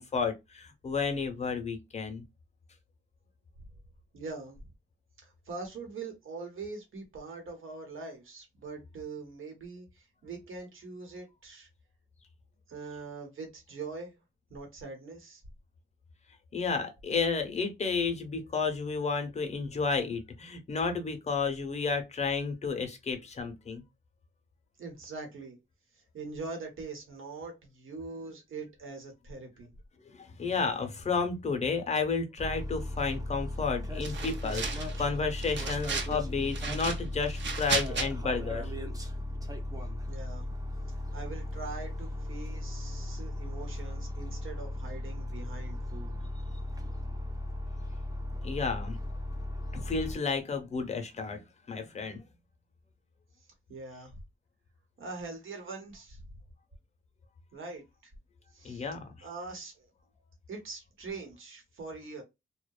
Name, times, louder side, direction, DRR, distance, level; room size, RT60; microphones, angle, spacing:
voice 1, 0.0-2.2 16.5-23.8 30.1-38.7 48.4-49.0 49.7-51.4 51.7-52.2 58.6-59.1, left 4 dB, 35° left, 0.6 m, -32 dB
voice 2, 4.1-4.6 5.2-11.7 12.7-14.2 14.5-15.4 24.8-25.6 25.9-29.7 40.1-40.5 40.9-46.2 53.7-54.2 55.0-56.2 57.5-58.1 58.5-58.9 59.2-59.9 60.5-62.2, right 3 dB, 80° right, 1.0 m, -43 dB
sound 1, 32.4-50.2, left 1 dB, 15° right, 0.4 m, -36 dB
sound 2, 34.0-35.0 35.4-36.2 36.5-38.1, right 4 dB, 60° right, 0.6 m, -34 dB
2.7 x 2.1 x 2.3 m
wide cardioid pair, 180°, 21 cm